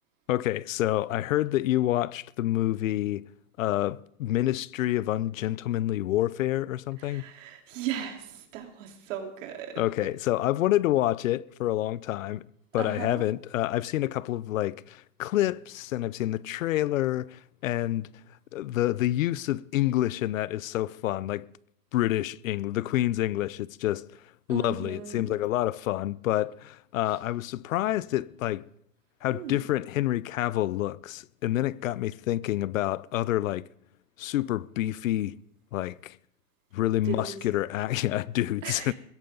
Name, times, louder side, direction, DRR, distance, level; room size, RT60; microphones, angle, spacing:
voice 1, 0.3-3.2 3.6-7.2 9.8-12.4 12.7-18.1 18.5-21.5 21.9-24.2 24.5-28.7 29.2-33.6 34.2-35.4 35.7-36.2 36.7-38.9, left 14 dB, 60° left, 0.7 m, -28 dB
voice 2, 7.0-10.1 12.8-13.2 24.5-25.3 29.3-29.6 37.0-37.4 38.6-38.9, right 9 dB, 55° right, 3.9 m, -37 dB
21.5 x 16.5 x 3.9 m
hypercardioid pair, 150°, 46 cm